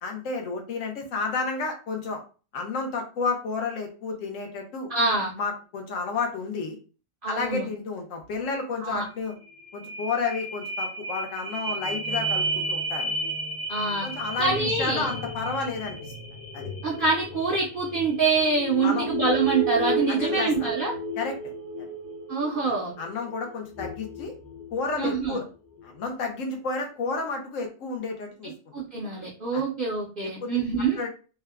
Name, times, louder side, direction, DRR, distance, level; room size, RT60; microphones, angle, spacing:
voice 1, 0.0-2.2 2.5-4.9 5.4-6.8 7.3-9.3 9.7-13.2 14.0-16.0 16.5-16.7 18.8-19.1 20.1-20.7 21.2-21.9 23.0-24.3 24.7-25.4 25.8-28.5 29.5-29.6 30.4-30.5 31.0-31.1, left 4 dB, 75° left, 3 dB, 1.0 m, -31 dB
voice 2, 4.9-5.3 7.2-7.7 8.8-9.0 13.7-14.1 14.4-15.1 16.8-20.9 22.3-22.9 25.0-25.4 28.4-31.0, right 4 dB, 55° right, -4 dB, 0.6 m, -25 dB
sound 1, 9.3-25.3 25.8-25.9, right 1 dB, 10° left, 0.5 m, -32 dB
3.4 x 2.0 x 2.2 m, 0.36 s
omnidirectional pair, 1.4 m